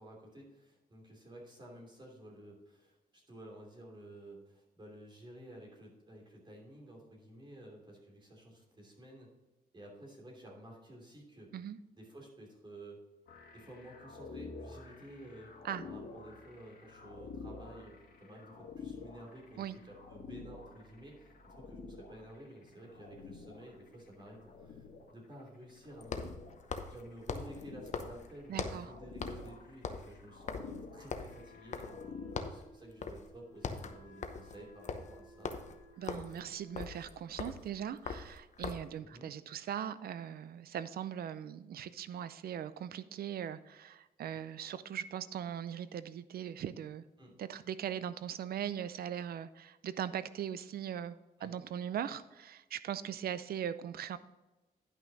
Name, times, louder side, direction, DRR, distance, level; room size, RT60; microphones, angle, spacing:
voice 1, 0.0-9.3 9.7-11.5 12.0-13.0 13.5-15.5 15.8-24.9 25.1-26.4 26.9-35.5 36.5-36.6 39.0-39.3 47.2-47.3 51.4-51.5, right 1 dB, 30° right, -1 dB, 3.0 m, -52 dB
sound 1, 13.3-32.4, left 4 dB, 70° left, 2.0 m, -50 dB
sound 2, 22.7-22.8 26.0-28.9 29.2-29.5 29.8-32.1 32.4-32.7 33.0-33.3 33.5-39.0, left 5 dB, 45° left, 0.8 m, -41 dB
voice 2, 28.5-28.9 36.0-47.0 47.4-51.2 51.4-54.2, right 9 dB, 70° right, 15 dB, 0.5 m, -40 dB
Wind instrument woodwind instrument, 31.3-37.2, left 2 dB, 15° left, 2.8 m, -59 dB
10.5 x 5.9 x 4.0 m, 1.1 s
cardioid pair, 110°, 16 cm